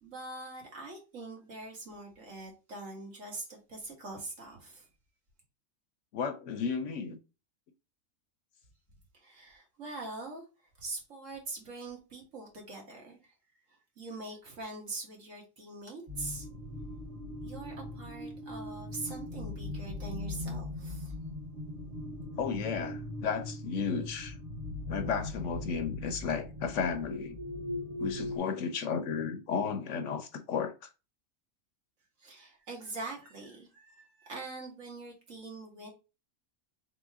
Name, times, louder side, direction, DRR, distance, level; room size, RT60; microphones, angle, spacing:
voice 1, 0.0-4.9 9.1-10.4 10.8-13.3 13.7-16.5 17.4-21.2 32.2-35.9, right 2 dB, 60° right, 2.0 m, -43 dB
voice 2, 6.1-7.2 22.4-24.4 24.9-27.4 28.0-30.9, left 6 dB, 65° left, 0.9 m, -33 dB
sound 1, 16.1-28.4, left 2 dB, 30° right, 0.9 m, -40 dB
4.0 x 3.4 x 3.6 m
omnidirectional pair, 1.5 m